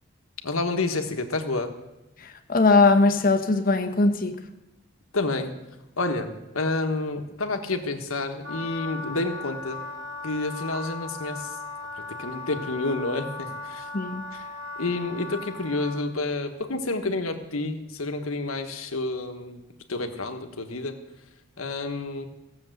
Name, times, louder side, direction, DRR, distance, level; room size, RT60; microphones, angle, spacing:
voice 1, 0.4-1.7 5.1-5.5 6.0-9.8 10.2-11.5 12.2-13.9 14.3-14.5 14.8-19.6 19.9-21.0 21.6-22.3, left 2 dB, 90° left, 1.4 m, -29 dB
voice 2, 2.2-4.4 13.9-14.2, left 3 dB, 40° left, 1.0 m, -20 dB
Wind instrument woodwind instrument, 8.4-16.0, left 3 dB, 85° right, 3.8 m, -37 dB
16.0 x 7.1 x 7.9 m
head